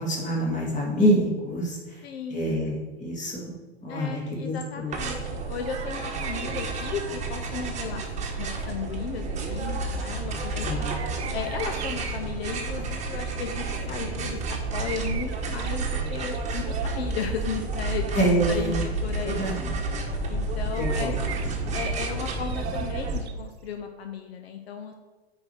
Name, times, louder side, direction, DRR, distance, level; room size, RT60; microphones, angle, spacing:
voice 1, 0.0-1.8 2.3-3.5 3.8-5.0 10.6-10.9 18.1-18.8 19.2-19.7 20.8-21.1, right 1 dB, 25° left, -2 dB, 2.4 m, -26 dB
voice 2, 2.0-2.5 3.9-10.7 11.3-18.1 18.5-19.5 20.3-21.5 21.7-24.9, left 6 dB, 70° left, 6 dB, 0.8 m, -35 dB
sound 1, 4.9-23.2, right 3 dB, 20° right, 1.3 m, -30 dB
sound 2, 5.6-7.0 10.8-12.2 14.7-16.8 17.3-17.4 18.0-18.1 18.3-18.4 20.7-23.4, right 8 dB, 80° right, 0.8 m, -40 dB
8.2 x 4.8 x 4.9 m, 1.3 s
hypercardioid pair, 110°, 32 cm